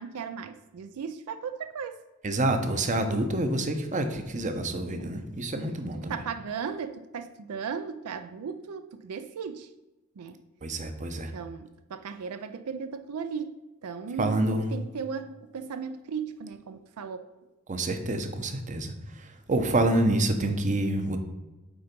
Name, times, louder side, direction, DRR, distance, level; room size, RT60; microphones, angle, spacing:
voice 1, 0.0-2.0 5.0-5.1 5.9-9.7 10.2-10.4 11.3-13.5 13.8-14.4 14.7-17.3, right 6 dB, 85° right, 10 dB, 0.4 m, -36 dB
voice 2, 2.2-6.2 10.6-11.3 14.2-14.7 17.7-21.2, right 1 dB, 35° right, 7 dB, 0.8 m, -27 dB
8.8 x 3.9 x 5.2 m, 1.1 s
head